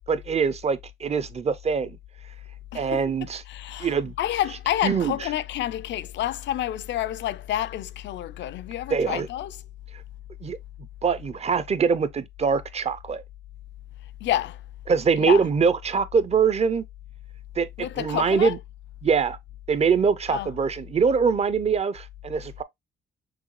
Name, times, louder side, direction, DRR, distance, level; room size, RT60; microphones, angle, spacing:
voice 1, 0.1-2.0 2.7-3.4 3.8-4.1 4.8-5.2 8.9-9.3 10.4-10.6 11.0-13.2 14.9-16.9 17.6-18.6 19.0-19.4 19.7-22.6, right 6 dB, 35° right, 0.5 m, -23 dB
voice 2, 2.7-3.0 3.5-9.6 14.2-14.6 15.2-15.5 17.8-18.6 20.3-20.5, left 13 dB, 65° left, 0.4 m, -29 dB
5.9 x 2.3 x 3.0 m
cardioid pair, 90°, 20 cm